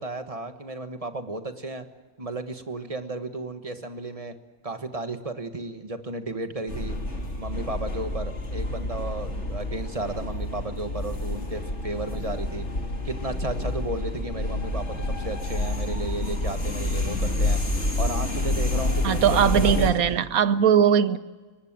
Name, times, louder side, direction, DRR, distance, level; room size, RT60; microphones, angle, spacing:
voice 1, 0.0-1.9 2.2-4.4 4.6-7.0 7.4-12.6 13.0-17.6 18.0-20.2, right 2 dB, 25° right, 8 dB, 1.4 m, -34 dB
sound 1, 6.7-19.9, left 2 dB, 55° left, 3.2 m, -28 dB
voice 2, 19.0-21.2, right 8 dB, 85° right, 14 dB, 1.3 m, -20 dB
23.5 x 20.0 x 7.6 m, 1.3 s
omnidirectional pair, 1.4 m